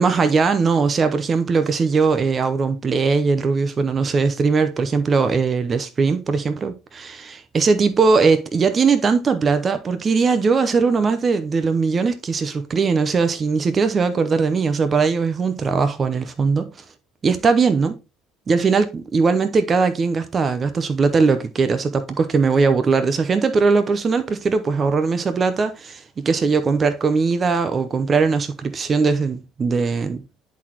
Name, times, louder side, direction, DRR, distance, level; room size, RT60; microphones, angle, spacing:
voice 1, 0.0-16.7 17.2-18.0 18.5-30.2, right 4 dB, 30° right, 0.7 m, -20 dB
10.5 x 4.1 x 2.9 m
cardioid pair, 105°, 0 cm